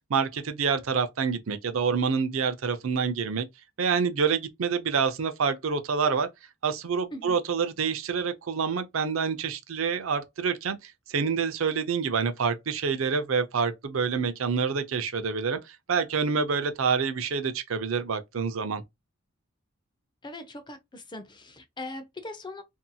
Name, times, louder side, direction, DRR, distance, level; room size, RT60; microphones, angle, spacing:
voice 1, 0.1-3.5 3.8-6.3 6.6-18.8, right 5 dB, 75° right, 0.5 m, -27 dB
voice 2, 20.2-22.6, left 2 dB, 20° left, 0.5 m, -40 dB
2.7 x 2.7 x 2.2 m
head